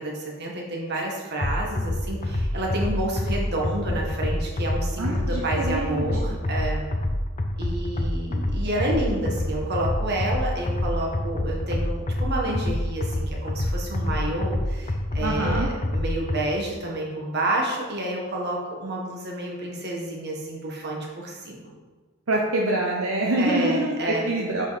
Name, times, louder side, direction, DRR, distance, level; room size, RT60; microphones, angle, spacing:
voice 1, 0.0-6.8 7.6-21.7 23.3-24.2, right 1 dB, 45° right, -2 dB, 1.6 m, -29 dB
sound 1, 1.4-16.4, left 1 dB, 35° left, 0.6 m, -27 dB
voice 2, 5.0-6.4 15.2-15.7 22.3-24.7, right 1 dB, 65° right, -2 dB, 0.8 m, -25 dB
8.1 x 5.4 x 4.2 m, 1.3 s
head